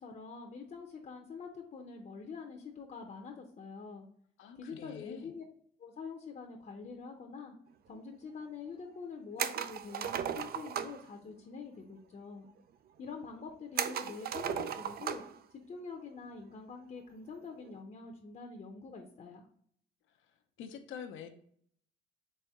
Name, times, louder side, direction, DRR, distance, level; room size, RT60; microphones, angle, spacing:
voice 1, 0.0-4.0 4.6-5.4 5.8-7.5 7.9-12.4 13.0-15.2 15.7-19.5, left 5 dB, 40° left, 2 dB, 0.7 m, -45 dB
voice 2, 4.4-5.3 20.6-21.3, left 7 dB, 80° left, 6 dB, 0.6 m, -46 dB
sound 1, 9.4-11.0 13.8-15.4 15.7-15.8 17.4-17.7, right 8 dB, 50° right, 0.4 m, -36 dB
4.2 x 3.4 x 3.5 m, 0.62 s
cardioid pair, 90°, 20 cm